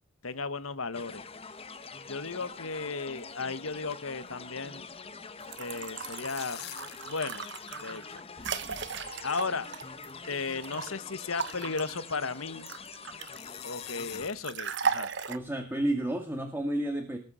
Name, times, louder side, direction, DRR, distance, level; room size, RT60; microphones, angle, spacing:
voice 1, 0.2-1.2 2.1-4.8 5.6-6.6 7.0-7.4 7.8-8.5 9.2-9.7 10.3-12.7 13.6-15.1, left 4 dB, 85° left, 14 dB, 1.4 m, -35 dB
sound 1, 0.9-14.3, left 4 dB, 30° left, 1.2 m, -45 dB
sound 2, 1.2-2.0 2.3-2.4 2.7-2.8 3.2-3.4 3.7-5.0 5.8-7.6 7.8-7.9 8.8-8.9 9.7-9.9 10.4-10.5 10.9-11.0 11.5-11.8 13.3-14.6, left 13 dB, 50° left, 1.0 m, -46 dB
pouring water into glass, 5.4-10.9 11.4-13.5 14.4-15.4, right 6 dB, 60° right, 1.4 m, -36 dB
voice 2, 15.3-17.2, right 1 dB, 10° right, 4 dB, 2.0 m, -31 dB
20.0 x 8.4 x 6.4 m, 0.35 s
head